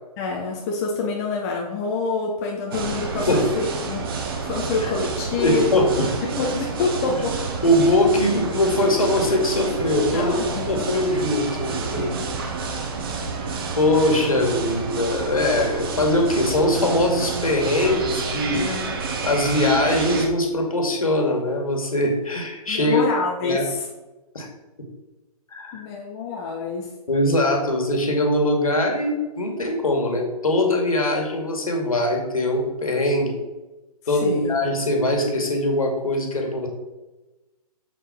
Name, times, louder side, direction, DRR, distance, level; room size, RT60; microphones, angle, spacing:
voice 1, 0.2-4.1 4.4-7.4 10.1-10.9 11.9-12.3 12.6-12.9 18.5-19.0 22.7-23.9 25.7-26.9 34.2-34.5, left 3 dB, 25° left, -1 dB, 1.1 m, -27 dB
sound 1, 2.7-20.3, right 4 dB, 35° right, 1.3 m, -29 dB
voice 2, 5.4-6.1 7.6-10.4 10.7-12.0 13.8-18.7 19.2-23.0 23.4-23.6 24.3-24.5 25.5-25.8 27.1-33.3 34.1-36.7, left 1 dB, 65° left, 2 dB, 2.3 m, -21 dB
7.4 x 6.8 x 4.5 m, 1.1 s
figure-of-eight pair, 130°, 20 cm